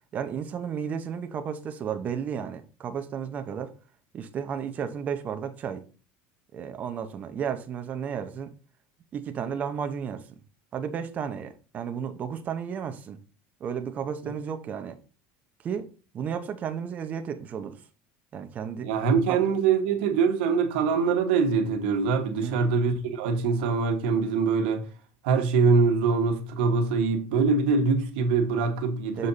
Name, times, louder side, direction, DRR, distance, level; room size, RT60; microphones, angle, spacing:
voice 1, 0.1-3.7 4.1-5.8 6.5-8.5 9.1-10.3 10.7-13.2 13.6-15.0 15.6-15.9 16.1-17.8 18.3-18.9 19.3-19.4 22.4-22.7 29.2-29.3, right 7 dB, 30° right, 0.8 m, -33 dB
voice 2, 18.8-24.8 25.2-29.3, right 5 dB, 85° right, 1.3 m, -23 dB
6.7 x 4.2 x 4.1 m
cardioid pair, 150°, 5 cm